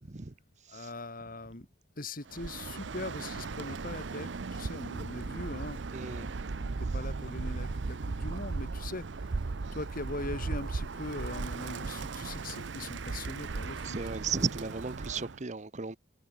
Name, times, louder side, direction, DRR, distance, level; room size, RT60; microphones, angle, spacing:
voice 1, 0.7-1.7 2.0-6.3 6.6-9.1 9.7-14.0, left 2 dB, 45° left, 2.2 m, -41 dB
Bird, 2.3-15.4, right 3 dB, 65° right, 0.7 m, -37 dB
voice 2, 5.9-6.3 13.8-16.0, right 5 dB, 40° right, 0.9 m, -35 dB
head